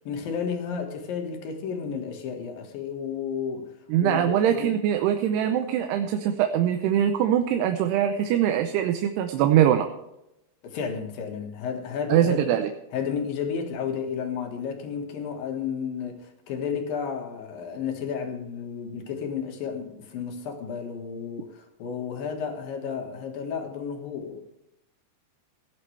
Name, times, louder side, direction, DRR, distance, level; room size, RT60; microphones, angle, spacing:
voice 1, 0.0-3.7 4.0-4.7 10.6-12.4 12.9-24.4, left 6 dB, 65° left, 3.1 m, -32 dB
voice 2, 3.9-9.9 12.1-12.7, right 10 dB, 80° right, 2.8 m, -22 dB
17.5 x 11.0 x 3.3 m
omnidirectional pair, 4.8 m